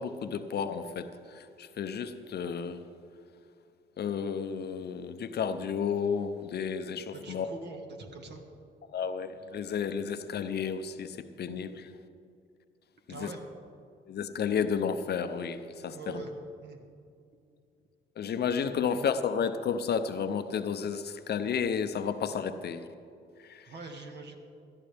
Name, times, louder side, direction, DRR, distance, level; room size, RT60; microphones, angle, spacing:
voice 1, 0.0-2.8 4.0-7.5 8.9-11.9 13.1-13.3 14.1-16.2 18.2-22.9 23.4-23.7, left 6 dB, 55° left, 10 dB, 0.7 m, -32 dB
voice 2, 7.1-8.4 13.1-13.5 15.9-16.3 16.6-16.8 18.9-19.0 23.6-24.4, right 3 dB, 60° right, 3 dB, 1.8 m, -43 dB
17.5 x 12.5 x 3.5 m, 2.4 s
cardioid pair, 90°, 20 cm